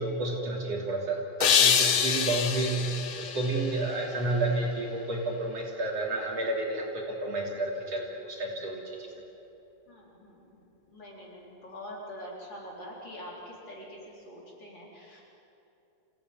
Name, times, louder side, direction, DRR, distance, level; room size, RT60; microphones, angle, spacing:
voice 1, 0.0-9.1, right 2 dB, 55° right, -1 dB, 4.2 m, -31 dB
sound 1, 1.4-4.5, left 7 dB, 55° left, 1.7 m, -26 dB
voice 2, 1.6-2.5 9.9-15.2, equal, 40° left, -4 dB, 4.7 m, -45 dB
27.5 x 16.5 x 9.6 m, 2.9 s
omnidirectional pair, 3.4 m